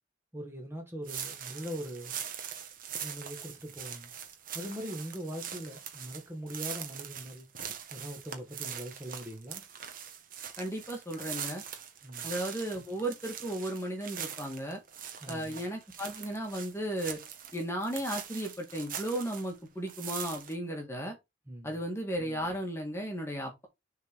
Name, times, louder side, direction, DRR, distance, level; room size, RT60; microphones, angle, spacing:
voice 1, 0.3-2.2 3.0-4.1 4.5-7.5 7.9-9.6 12.0-12.3 15.2-15.6 21.5-21.8, equal, 15° right, 1.8 m, -41 dB
sound 1, 1.0-19.6 19.9-20.5, right 8 dB, 45° right, 1.3 m, -42 dB
voice 2, 10.6-11.6 12.2-14.8 15.3-17.2 17.5-21.2 21.6-23.7, right 1 dB, 15° left, 1.9 m, -35 dB
7.0 x 4.0 x 4.6 m
head